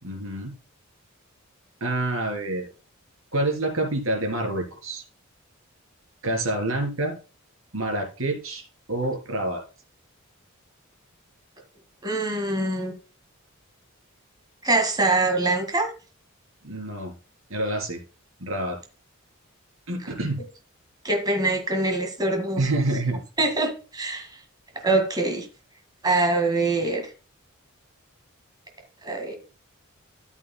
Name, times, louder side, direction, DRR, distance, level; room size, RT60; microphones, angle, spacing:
voice 1, 0.0-0.6 1.8-2.7 3.3-5.0 6.2-7.1 7.7-8.6 8.9-9.6 16.6-17.1 17.5-18.0 18.4-18.8 19.9-20.4 22.6-23.2, right 2 dB, 70° right, 3.6 m, -27 dB
voice 2, 12.0-12.9 14.6-15.9 21.0-22.6 23.4-24.3 24.8-25.5 26.0-27.0 29.0-29.4, right 2 dB, 20° right, 1.8 m, -24 dB
13.0 x 8.2 x 2.2 m
head